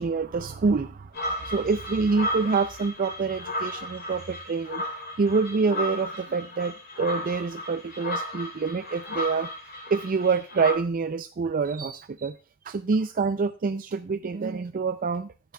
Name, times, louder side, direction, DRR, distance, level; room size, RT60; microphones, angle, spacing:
voice 1, 0.0-4.8 5.2-9.5 9.9-12.4 12.6-15.3, right 4 dB, 40° right, 10 dB, 0.4 m, -26 dB
sound 1, 1.1-10.7, left 1 dB, 45° left, 4.9 m, -34 dB
14.0 x 9.9 x 2.2 m, 0.34 s
head